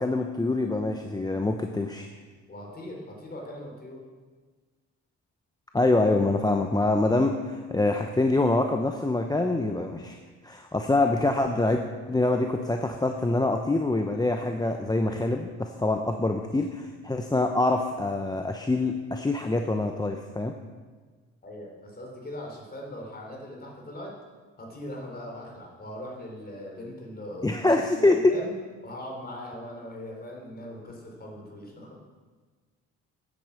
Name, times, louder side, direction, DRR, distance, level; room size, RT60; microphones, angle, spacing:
voice 1, 0.0-2.1 5.7-10.2 10.4-11.8 12.1-20.5 27.4-28.2, left 2 dB, 15° left, 4 dB, 0.8 m, -25 dB
voice 2, 2.5-4.1 21.4-24.2 24.6-28.5 28.8-32.0, left 1 dB, 30° left, 0 dB, 3.9 m, -40 dB
9.9 x 8.9 x 7.2 m, 1.4 s
cardioid pair, 90°, 30 cm